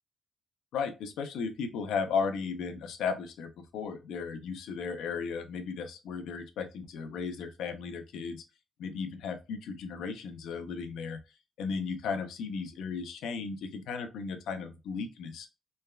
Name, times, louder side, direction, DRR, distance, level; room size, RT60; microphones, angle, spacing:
voice 1, 0.7-8.4 8.8-11.2 11.6-15.5, left 5 dB, 90° left, 0.5 m, -35 dB
3.3 x 2.2 x 2.2 m
cardioid pair, 135°, 0 cm